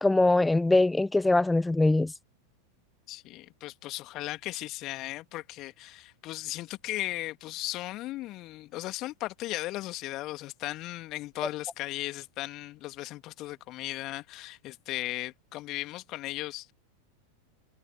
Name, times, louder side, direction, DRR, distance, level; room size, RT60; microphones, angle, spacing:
voice 1, 0.0-2.1, left 2 dB, 5° left, 0.3 m, -22 dB
voice 2, 3.1-16.7, left 17 dB, 35° left, 2.2 m, -37 dB
figure-of-eight pair, 90°, 0 cm